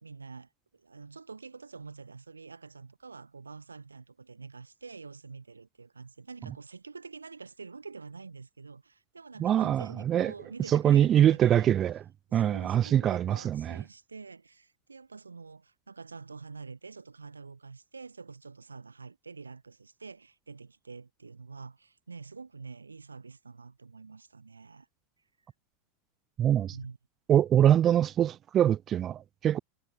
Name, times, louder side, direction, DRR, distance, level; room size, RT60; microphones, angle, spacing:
voice 1, 0.0-11.7 12.3-24.9 26.7-27.0, right 4 dB, 90° right, 1.2 m, -46 dB
voice 2, 9.4-10.3 10.7-12.0 12.3-13.8 26.4-26.8 27.3-29.6, right 10 dB, 35° right, 0.7 m, -24 dB
hypercardioid pair, 90°, 0 cm